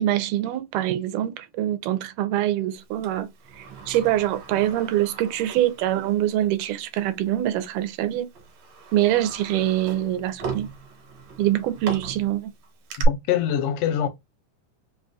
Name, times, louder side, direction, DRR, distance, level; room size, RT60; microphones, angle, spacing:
voice 1, 0.0-3.3 3.6-8.3 8.9-10.7 11.4-12.5, right 13 dB, 85° right, 2.2 m, -24 dB
Sliding door, 3.0-6.3 6.6-6.7 7.7-7.9 8.3-13.0, right 7 dB, 65° right, 2.1 m, -37 dB
voice 2, 13.1-14.1, left 10 dB, 90° left, 2.2 m, -24 dB
5.1 x 2.7 x 2.2 m
omnidirectional pair, 3.6 m